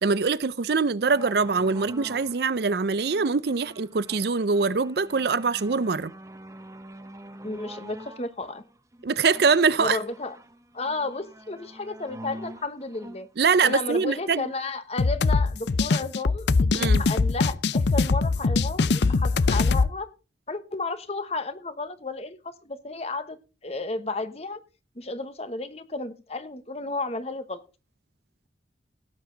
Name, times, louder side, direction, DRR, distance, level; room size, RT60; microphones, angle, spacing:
voice 1, 0.0-6.1 9.0-10.0 13.4-14.5 16.7-17.0, right 4 dB, 55° right, 0.5 m, -23 dB
sound 1, 1.1-14.7 15.5-15.6, right 1 dB, 15° right, 1.1 m, -46 dB
voice 2, 7.4-8.6 9.8-10.4 10.7-13.3 13.6-20.1 20.5-23.4 23.6-24.6 25.0-27.6, left 3 dB, 35° left, 1.1 m, -33 dB
sound 2, 15.0-19.9, left 4 dB, 65° left, 0.5 m, -22 dB
17.0 x 8.1 x 3.9 m
head